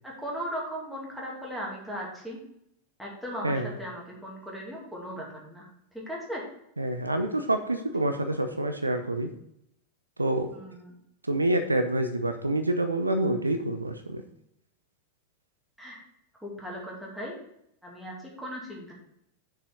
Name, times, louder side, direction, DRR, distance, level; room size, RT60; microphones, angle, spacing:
voice 1, 0.0-2.4 3.0-5.7 6.1-6.4 10.5-10.9 15.8-16.0 16.4-17.3 17.8-18.9, equal, ahead, -4 dB, 2.5 m, -37 dB
voice 2, 6.8-9.3 10.2-10.5 11.3-14.2, right 1 dB, 80° right, 8 dB, 0.6 m, -27 dB
6.6 x 4.9 x 6.0 m, 0.76 s
figure-of-eight pair, 90°, 0 cm